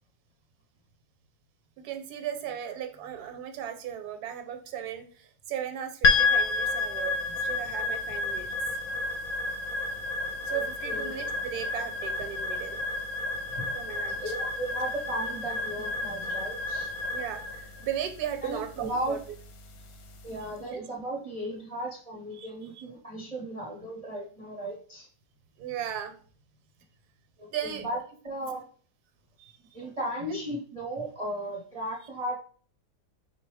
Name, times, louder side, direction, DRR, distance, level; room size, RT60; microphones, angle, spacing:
voice 1, 1.8-8.5 8.9-9.0 10.5-12.8 13.7-14.3 17.1-19.2 20.6-20.8 22.3-22.5 22.8-22.9 25.6-26.2 27.5-27.9 29.4-29.8 30.3-30.4, right 10 dB, 75° right, 7 dB, 1.2 m, -36 dB
sound 1, 6.0-20.4, left 3 dB, 70° left, 1.0 m, -30 dB
voice 2, 10.5-11.2 13.6-13.7 14.2-16.9 18.4-19.2 20.2-25.1 27.4-28.0 28.2-28.6 29.7-32.3, right 1 dB, 35° right, -1 dB, 0.6 m, -35 dB
3.8 x 2.7 x 4.7 m, 0.44 s
omnidirectional pair, 1.7 m